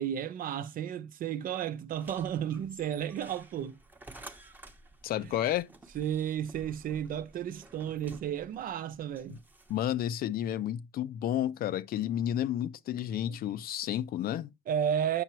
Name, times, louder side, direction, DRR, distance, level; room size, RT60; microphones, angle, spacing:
voice 1, 0.0-3.8 5.2-5.3 5.9-9.4 13.3-13.4 14.7-15.2, right 9 dB, 55° right, 0.7 m, -33 dB
sound 1, 1.9-10.0, right 2 dB, 10° right, 0.9 m, -53 dB
voice 2, 5.0-5.7 9.3-9.4 9.7-14.5, left 11 dB, 65° left, 0.6 m, -31 dB
7.8 x 5.6 x 3.0 m
cardioid pair, 110°, 17 cm